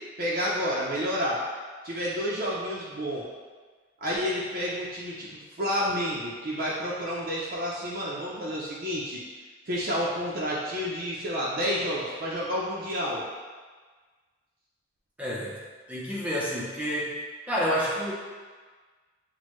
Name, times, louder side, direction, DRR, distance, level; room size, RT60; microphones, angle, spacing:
voice 1, 0.2-1.4 1.8-3.3 4.0-9.2 9.7-13.3, equal, 50° right, -6 dB, 0.6 m, -30 dB
voice 2, 15.2-15.6 15.9-17.1 17.5-18.1, equal, 5° right, -7 dB, 0.6 m, -29 dB
6.2 x 2.2 x 3.1 m, 1.4 s
head